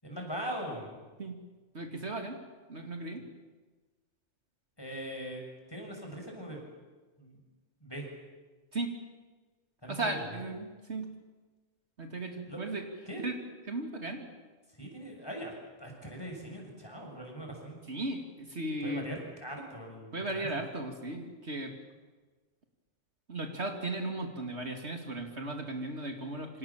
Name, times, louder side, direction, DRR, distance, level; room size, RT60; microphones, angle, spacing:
voice 1, 0.0-1.1 4.8-5.4 5.7-6.6 7.2-7.4 7.8-8.1 9.8-10.2 12.5-12.6 13.1-13.3 14.7-15.5 15.8-17.8 18.8-20.6, right 1 dB, 20° left, 1 dB, 6.8 m, -41 dB
voice 2, 1.7-2.4 2.7-3.2 8.7-8.9 9.9-11.1 12.0-12.8 13.2-13.3 13.7-14.3 17.9-19.0 20.1-21.7 23.3-26.6, right 2 dB, 55° right, 4 dB, 2.7 m, -36 dB
28.0 x 26.0 x 7.3 m, 1.3 s
omnidirectional pair, 1.3 m